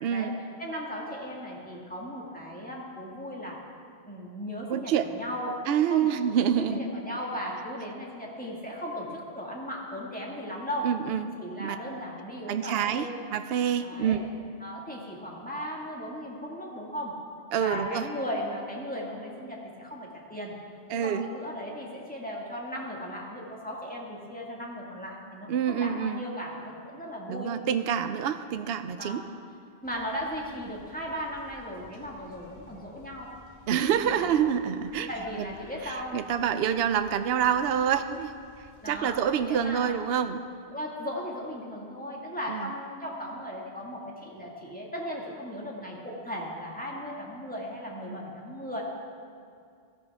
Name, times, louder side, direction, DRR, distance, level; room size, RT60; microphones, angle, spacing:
voice 1, 0.0-0.4 4.7-5.1 5.7-6.8 10.8-11.3 11.6-11.8 12.5-14.2 17.5-18.1 20.9-21.3 25.5-26.2 27.3-29.2 33.7-35.1 35.4-35.5 35.8-40.4 42.5-42.7, right 8 dB, 70° right, 10 dB, 0.8 m, -27 dB
voice 2, 0.6-3.6 4.1-5.6 5.9-6.1 6.6-10.9 11.4-13.2 13.8-14.2 14.6-17.2 17.6-20.5 20.9-27.5 29.0-29.2 29.8-33.3 34.1-34.3 35.1-36.2 38.8-39.2 39.4-39.9 40.7-48.8, equal, 10° left, -3 dB, 2.0 m, -37 dB
sound 1, 29.8-39.8, equal, 25° left, 2.3 m, -55 dB
16.5 x 13.5 x 3.6 m, 2.3 s
omnidirectional pair, 1.1 m